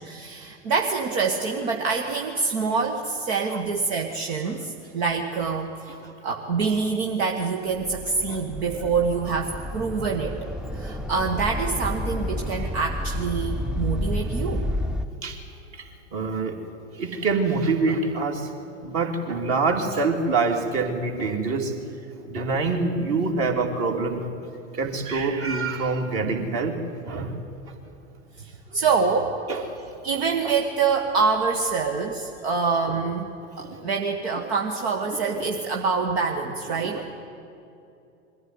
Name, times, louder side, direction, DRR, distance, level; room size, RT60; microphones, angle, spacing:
voice 1, 0.0-5.9 6.2-14.7 28.4-29.3 30.0-37.0, right 5 dB, 60° right, 2 dB, 1.7 m, -26 dB
sound 1, 7.7-15.1, left 1 dB, ahead, 0.7 m, -30 dB
voice 2, 15.7-16.6 17.0-18.5 18.8-21.8 22.1-24.2 24.7-27.4 28.7-28.8 29.5-29.7 30.4-30.5 32.9-33.0 33.6-33.8 35.3-35.4 36.8-36.9, right 3 dB, 40° right, 3 dB, 2.9 m, -26 dB
22.5 x 15.0 x 9.6 m, 2.7 s
figure-of-eight pair, 90°, 36 cm